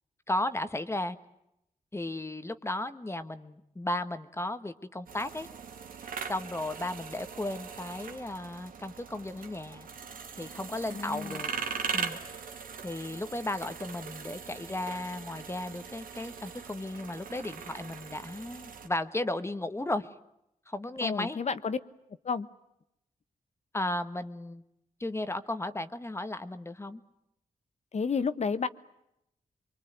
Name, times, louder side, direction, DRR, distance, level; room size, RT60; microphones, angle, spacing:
voice 1, 0.3-1.2 1.9-5.5 6.3-9.9 10.4-11.5 11.9-12.2 12.8-20.1 20.7-21.4 23.7-24.6 25.0-27.0, left 1 dB, 20° left, 11 dB, 1.3 m, -35 dB
sound 1, 5.1-18.9, right 6 dB, 85° right, 2.2 m, -40 dB
voice 2, 10.9-11.4 21.0-21.8 22.2-22.5 27.9-28.7, left 5 dB, 50° left, 13 dB, 1.2 m, -31 dB
24.5 x 24.5 x 9.2 m, 0.82 s
wide cardioid pair, 100°, 14 cm